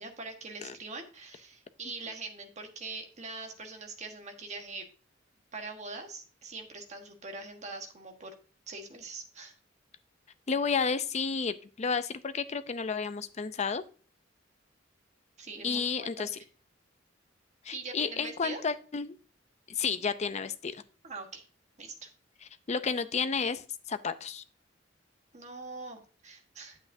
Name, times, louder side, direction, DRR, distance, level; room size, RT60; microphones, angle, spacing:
voice 1, 0.0-4.9 5.5-8.3 8.7-9.5 15.4-15.8 16.2-16.3 17.7-18.6 21.0-21.4 21.8-22.1 25.3-26.8, right 3 dB, 40° right, 4 dB, 1.4 m, -42 dB
voice 2, 10.5-13.8 15.6-16.3 17.6-19.2 19.7-20.8 22.7-24.4, left 5 dB, 35° left, 12 dB, 0.5 m, -31 dB
9.3 x 8.1 x 2.7 m, 0.37 s
head